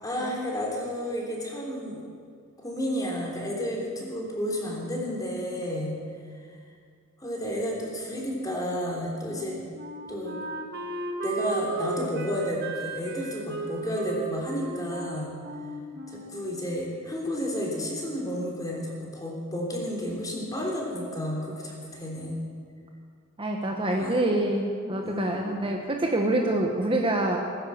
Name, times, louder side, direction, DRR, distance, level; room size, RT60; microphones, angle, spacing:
voice 1, 0.0-2.0 2.6-6.0 6.4-6.6 7.2-9.6 10.1-10.4 11.2-15.4 16.1-22.3 23.8-24.1 25.0-25.7, equal, 15° left, -2 dB, 3.4 m, -31 dB
Wind instrument woodwind instrument, 9.3-16.8, right 3 dB, 55° right, 1.6 m, -36 dB
voice 2, 23.4-27.4, right 1 dB, 25° right, 1 dB, 1.1 m, -26 dB
19.5 x 10.5 x 7.3 m, 2.1 s
head